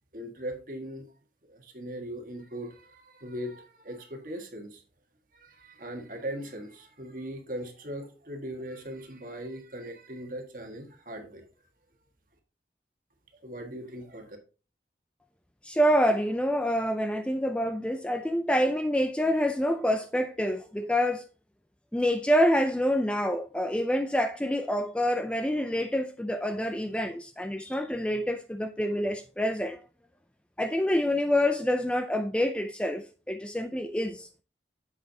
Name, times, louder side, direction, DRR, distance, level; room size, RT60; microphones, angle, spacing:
voice 1, 0.1-1.1 1.5-4.8 5.3-11.5 13.4-14.4, right 1 dB, 50° right, 1.6 m, -39 dB
voice 2, 15.6-21.2 21.9-29.8 30.6-34.3, equal, 5° left, 0.3 m, -27 dB
7.4 x 7.4 x 2.7 m
head